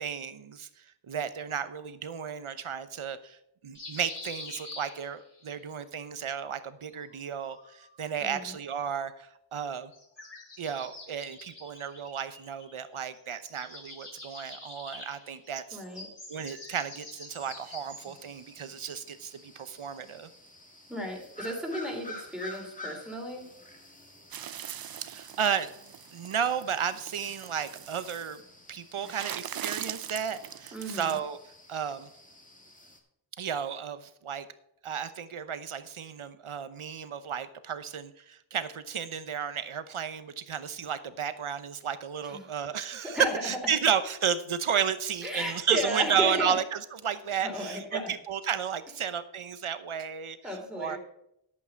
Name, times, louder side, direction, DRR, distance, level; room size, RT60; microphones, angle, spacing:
voice 1, 0.0-3.4 3.6-9.9 10.6-15.8 16.3-20.3 25.0-25.7 26.1-28.4 28.7-31.4 31.7-32.1 33.4-34.5 34.8-51.0, right 7 dB, 80° right, 12 dB, 1.0 m, -33 dB
sound 1, 3.7-5.5 6.9-8.0 9.9-12.9 13.1-18.3, left 2 dB, 60° left, 5.0 m, -46 dB
voice 2, 8.2-8.5 15.7-16.1 20.9-23.5 30.7-31.2 42.2-42.4 43.0-43.3 45.2-46.6 47.4-48.1 50.4-51.0, equal, ahead, 0 dB, 3.4 m, -34 dB
sound 2, 17.4-33.0, left 1 dB, 15° left, 2.0 m, -50 dB
mop squeeze water drops into plastic bucket, 24.3-28.4 29.0-31.2, right 9 dB, 50° right, 0.5 m, -41 dB
11.0 x 8.5 x 4.5 m, 0.78 s
wide cardioid pair, 70°, 49 cm